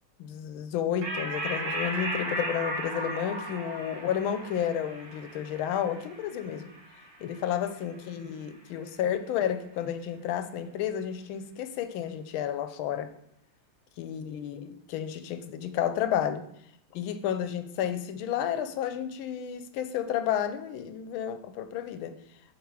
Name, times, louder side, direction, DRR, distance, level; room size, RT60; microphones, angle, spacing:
voice 1, 0.2-6.7 7.2-13.1 14.0-16.4 16.9-22.2, left 9 dB, 75° left, 10 dB, 1.4 m, -31 dB
sound 1, 1.0-7.9, right 1 dB, 50° right, 1.7 m, -36 dB
7.5 x 3.5 x 4.7 m, 0.71 s
omnidirectional pair, 2.3 m